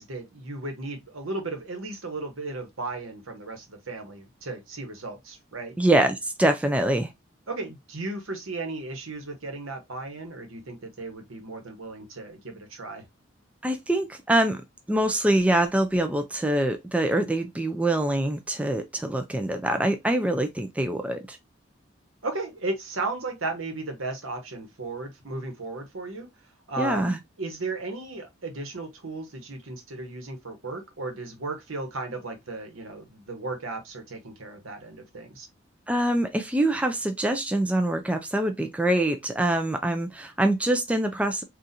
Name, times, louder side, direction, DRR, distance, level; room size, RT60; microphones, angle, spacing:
voice 1, 0.0-5.8 7.5-13.0 22.2-26.3 26.7-35.5, right 3 dB, 85° right, 1.1 m, -35 dB
voice 2, 5.8-7.1 13.6-14.6 14.9-21.4 26.8-27.2 35.9-41.4, right 1 dB, 5° right, 0.3 m, -24 dB
4.1 x 2.4 x 2.6 m
head